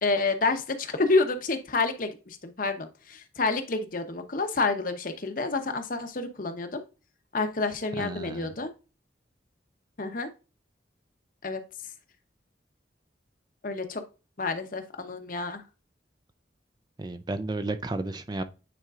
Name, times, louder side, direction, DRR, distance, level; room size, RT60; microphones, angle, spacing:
voice 1, 0.0-6.8 7.3-8.7 10.0-10.3 11.4-11.6 13.6-14.0 14.4-15.6, left 3 dB, 50° left, 0.8 m, -28 dB
voice 2, 8.0-8.5 17.0-18.4, right 2 dB, 25° right, 0.4 m, -32 dB
9.2 x 4.4 x 2.4 m
head